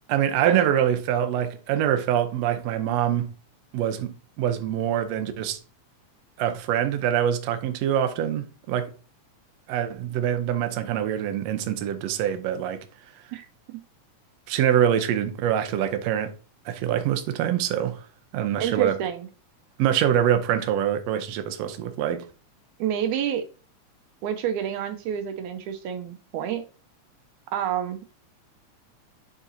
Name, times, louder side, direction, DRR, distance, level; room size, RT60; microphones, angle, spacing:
voice 1, 0.1-3.3 3.7-5.6 6.4-8.9 9.7-12.8 14.5-16.3 16.7-18.0 18.3-19.0 19.8-22.3, right 10 dB, 70° right, 1.7 m, -24 dB
voice 2, 18.6-19.3 22.8-23.5 24.2-26.7 27.5-28.1, right 9 dB, 90° right, 2.0 m, -28 dB
9.9 x 3.9 x 2.7 m
omnidirectional pair, 3.4 m